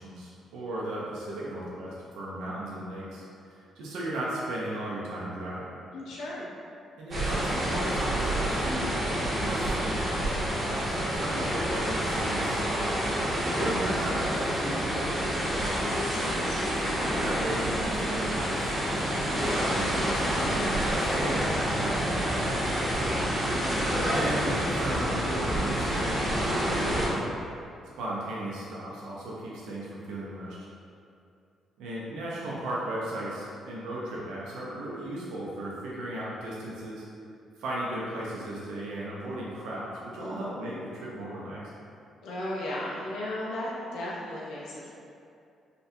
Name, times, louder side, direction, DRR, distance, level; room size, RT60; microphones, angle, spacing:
voice 1, 0.0-5.7 7.0-8.9 9.4-12.9 13.4-15.6 17.0-18.7 19.3-21.5 21.8-22.6 24.1-27.3 28.0-30.6 31.8-37.0 37.6-41.6, right 1 dB, 90° right, -6 dB, 0.5 m, -36 dB
voice 2, 5.9-6.5 15.8-16.6 23.0-23.3 40.2-40.4 42.2-44.9, left 1 dB, 90° left, -6 dB, 0.5 m, -36 dB
sound 1, 7.1-27.1, equal, 40° right, 1.0 m, -28 dB
3.9 x 2.2 x 2.6 m, 2.5 s
cardioid pair, 90°, 0 cm